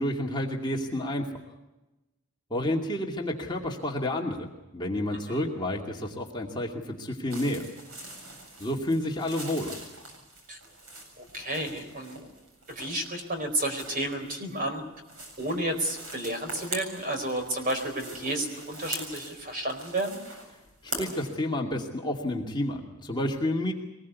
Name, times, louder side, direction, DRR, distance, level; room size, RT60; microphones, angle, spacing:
voice 1, 0.0-1.3 2.5-7.6 8.6-9.7 20.8-23.7, left 1 dB, 20° left, 0 dB, 2.4 m, -30 dB
sound 1, 7.3-21.3, right 2 dB, 70° right, 7.7 m, -43 dB
voice 2, 11.2-12.2 12.7-14.8 15.4-20.2, right 1 dB, 40° right, 6 dB, 4.4 m, -31 dB
23.5 x 20.5 x 8.4 m, 1.0 s
head